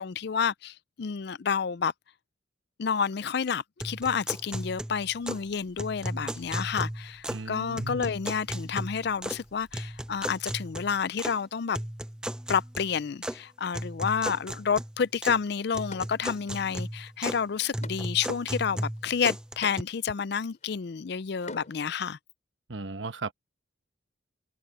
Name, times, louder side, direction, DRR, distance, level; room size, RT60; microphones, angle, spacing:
voice 1, 0.0-1.9 2.8-11.8 12.5-22.2, left 6 dB, 55° left, 0.4 m, -29 dB
sound 1, 3.8-5.5 5.8-7.5 7.8-9.5 9.7-11.4 11.7-13.4 13.7-15.4 15.7-17.4 17.7-19.8, right 1 dB, 5° right, 0.6 m, -36 dB
sound 2, 5.0-10.4, equal, 50° right, 6.2 m, -62 dB
voice 2, 7.3-8.1 22.7-23.3, right 3 dB, 70° right, 1.2 m, -36 dB
sound 3, 15.1-15.2 15.9-16.8 17.2-22.0, left 2 dB, 35° left, 6.0 m, -48 dB
head